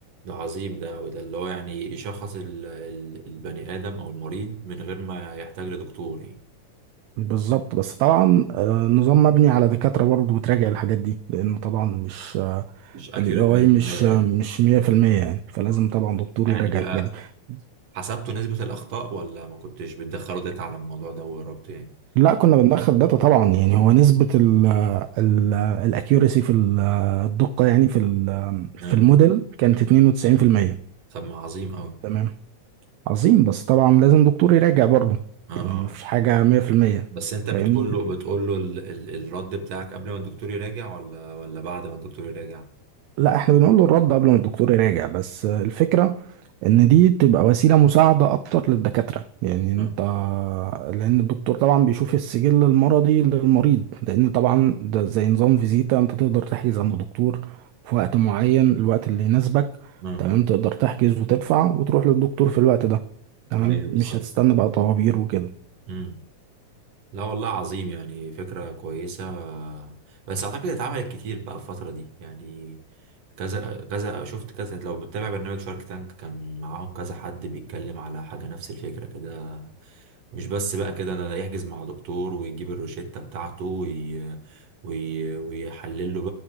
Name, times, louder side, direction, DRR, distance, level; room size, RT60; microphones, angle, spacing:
voice 1, 0.2-6.4 12.9-14.2 15.7-15.8 16.5-17.2 17.9-21.9 28.8-29.0 31.1-31.9 35.5-35.9 37.1-42.6 49.8-50.0 60.0-60.3 63.6-64.5 65.9-66.2 67.1-72.8 73.4-86.3, right 4 dB, 60° right, 2.7 m, -32 dB
voice 2, 7.2-17.1 22.2-30.8 32.0-32.3 33.1-35.3 35.6-37.1 37.5-37.9 43.2-46.2 46.6-57.6 57.9-59.8 60.2-63.0 63.5-65.5, right 13 dB, 80° right, 1.9 m, -19 dB
23.0 x 7.9 x 3.7 m
omnidirectional pair, 3.3 m